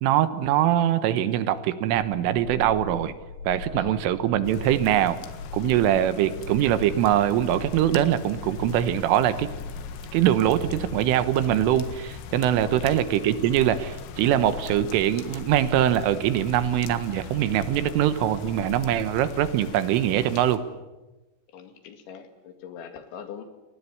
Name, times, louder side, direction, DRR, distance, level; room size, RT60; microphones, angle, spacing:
voice 1, 0.0-3.1 3.5-5.2 5.5-9.5 10.1-20.6, right 11 dB, 85° right, 12 dB, 3.8 m, -23 dB
sound 1, 2.2-19.5, left 4 dB, 50° left, 5.8 m, -40 dB
voice 2, 3.7-4.0 12.5-12.9 21.5-23.4, left 7 dB, 70° left, 7 dB, 4.4 m, -42 dB
sound 2, 4.4-20.6, left 5 dB, 85° left, 4.4 m, -42 dB
30.0 x 20.5 x 8.5 m, 1.1 s
omnidirectional pair, 5.7 m